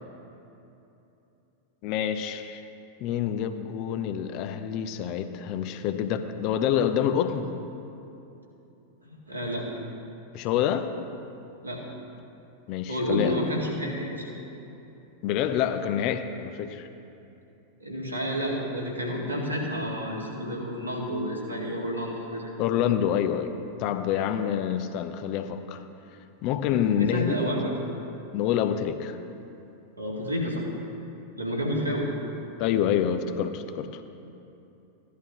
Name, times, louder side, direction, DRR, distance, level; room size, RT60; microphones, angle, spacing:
voice 1, 1.8-2.6 3.0-7.5 10.3-10.9 12.7-13.4 15.2-16.9 22.6-23.5 23.8-25.8 26.4-27.5 28.3-29.2 32.6-34.0, left 9 dB, 40° left, 9 dB, 0.6 m, -27 dB
voice 2, 9.0-9.7 11.6-11.8 12.9-14.3 17.8-22.5 26.9-27.7 30.0-30.7 31.4-32.1, equal, 85° right, -4 dB, 2.0 m, -30 dB
15.5 x 11.0 x 3.0 m, 2.9 s
figure-of-eight pair, 90°, 0 cm